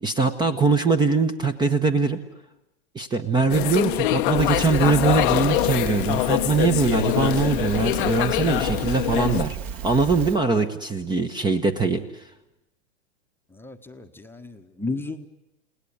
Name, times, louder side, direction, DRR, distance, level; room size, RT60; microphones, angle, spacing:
voice 1, 0.0-2.2 2.9-9.6 9.8-12.0, right 4 dB, 10° right, 10 dB, 1.2 m, -22 dB
sound 1, 3.5-9.4, left 17 dB, 45° left, 0.9 m, -24 dB
Crackle, 4.3-10.4, right 8 dB, 45° right, 2.9 m, -33 dB
voice 2, 13.5-15.3, left 3 dB, 5° left, 5 dB, 1.2 m, -33 dB
30.0 x 18.5 x 9.6 m, 0.93 s
hypercardioid pair, 115°, 35 cm